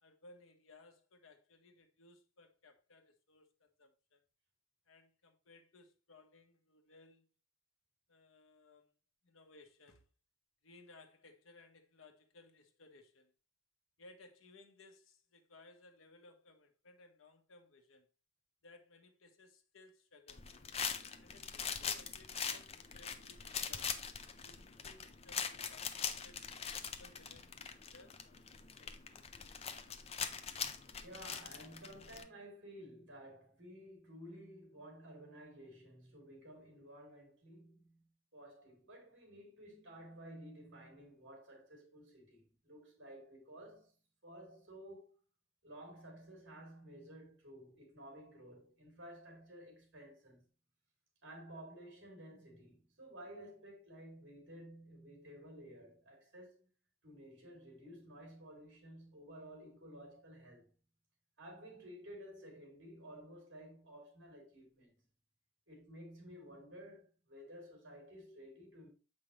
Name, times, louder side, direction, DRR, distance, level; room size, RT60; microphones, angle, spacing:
voice 1, 0.0-4.2 4.9-7.3 8.1-8.9 9.2-10.0 10.6-13.3 14.0-18.1 18.6-20.7 21.2-24.1 24.4-27.6 27.9-29.3, left 2 dB, 85° left, 1.1 m, -62 dB
sound 1, 20.3-32.2, left 7 dB, 30° left, 0.5 m, -42 dB
voice 2, 31.0-43.9 44.2-45.1 45.6-50.5 51.2-56.7 57.0-60.7 61.4-65.0 65.7-68.9, equal, 65° right, 3.4 m, -54 dB
7.4 x 5.4 x 3.2 m
head